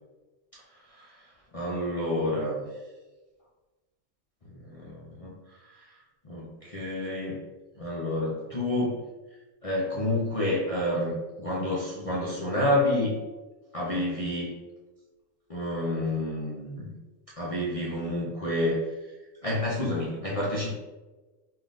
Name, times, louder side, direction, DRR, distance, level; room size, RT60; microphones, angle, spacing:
voice 1, 0.9-1.2 1.5-2.6 4.6-6.0 6.2-7.4 7.8-9.0 9.6-13.2 13.7-14.6 15.5-16.9 17.4-19.1 19.4-20.7, left 1 dB, 50° left, -5 dB, 0.4 m, -29 dB
3.5 x 2.4 x 3.8 m, 1.2 s
omnidirectional pair, 1.3 m